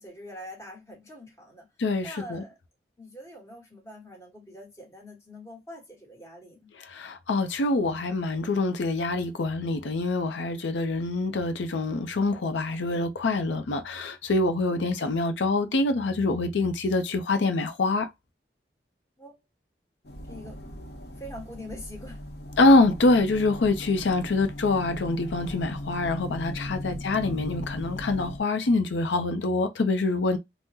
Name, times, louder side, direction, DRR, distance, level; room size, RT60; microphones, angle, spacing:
voice 1, 0.0-1.7 2.0-2.5 3.0-6.7 14.7-14.8 19.2-19.3 20.3-20.6 21.1-22.2 26.7-27.0, left 1 dB, 15° left, 1.1 m, -44 dB
voice 2, 1.8-2.4 6.8-18.1 22.6-30.4, left 2 dB, 90° left, 0.5 m, -25 dB
sound 1, 20.0-28.4, left 1 dB, 65° left, 0.8 m, -38 dB
3.6 x 2.1 x 2.7 m
head